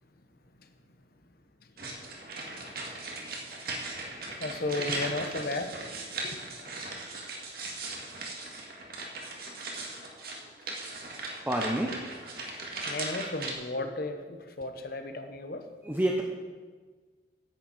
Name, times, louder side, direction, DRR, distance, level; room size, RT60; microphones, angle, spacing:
voice 1, 1.6-2.8 4.3-5.8 6.2-6.4 12.8-15.7, left 2 dB, 55° left, 7 dB, 1.1 m, -35 dB
sound 1, 1.8-13.5, right 2 dB, 55° right, 1.9 m, -38 dB
voice 2, 11.5-11.9 15.9-16.2, right 1 dB, 10° right, 0 dB, 0.8 m, -27 dB
10.0 x 6.8 x 7.9 m, 1.4 s
head